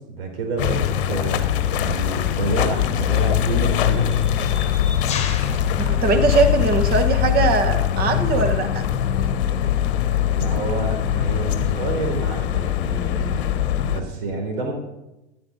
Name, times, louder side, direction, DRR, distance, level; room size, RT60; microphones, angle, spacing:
voice 1, 0.1-4.2 10.3-14.7, right 3 dB, 55° right, 2 dB, 4.3 m, -28 dB
sound 1, 0.6-14.0, left 10 dB, 50° left, 1.2 m, -22 dB
sound 2, 1.5-1.7 2.7-7.0, left 6 dB, 20° left, 2.0 m, -36 dB
voice 2, 5.8-8.8, right 4 dB, 25° right, 8 dB, 1.7 m, -21 dB
13.5 x 10.5 x 5.4 m, 0.96 s
figure-of-eight pair, 95°, 35 cm